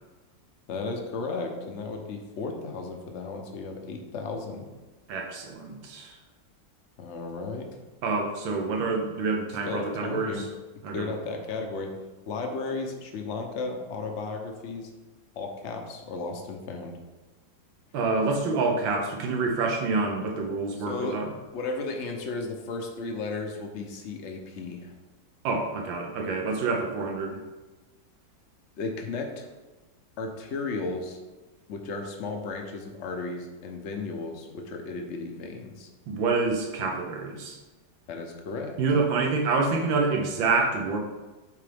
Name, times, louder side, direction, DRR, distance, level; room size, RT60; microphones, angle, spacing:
voice 1, 0.7-4.7 7.0-7.8 9.7-10.5 10.9-11.9 12.3-14.9 15.3-17.0 20.8-24.9 28.8-29.5 30.2-31.2 31.7-35.9 38.1-38.7, left 3 dB, 55° left, 3 dB, 0.8 m, -34 dB
voice 2, 5.1-6.2 8.0-10.5 10.8-11.1 17.9-21.3 25.4-27.4 36.1-37.6 38.8-41.0, right 3 dB, 90° right, 2 dB, 1.7 m, -27 dB
8.2 x 3.9 x 3.5 m, 1.2 s
omnidirectional pair, 2.1 m